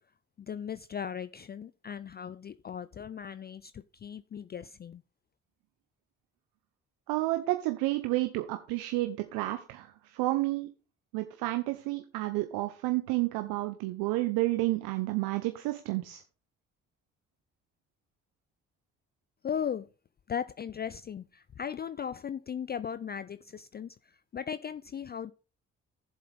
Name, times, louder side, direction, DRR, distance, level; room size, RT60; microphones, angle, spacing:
voice 1, 0.4-5.0 19.4-19.9 20.3-25.3, left 8 dB, 30° left, 0.4 m, -37 dB
voice 2, 7.1-10.7 11.1-16.2, right 19 dB, 75° right, 1.0 m, -30 dB
14.5 x 7.5 x 3.5 m
hypercardioid pair, 45°, 36 cm